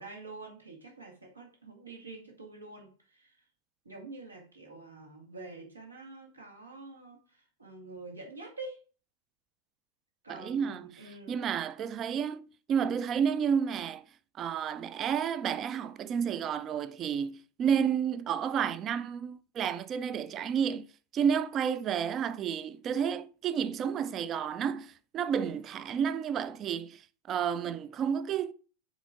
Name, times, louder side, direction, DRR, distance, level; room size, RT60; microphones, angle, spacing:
voice 1, 0.0-3.4 3.9-7.2 7.6-8.8 10.2-11.4, right 3 dB, 80° right, 1.9 m, -46 dB
voice 2, 10.3-10.9 11.3-14.0 14.3-20.9 21.1-27.0 27.3-28.5, right 7 dB, 30° right, 0.4 m, -31 dB
7.2 x 4.3 x 3.6 m
figure-of-eight pair, 90°, 0 cm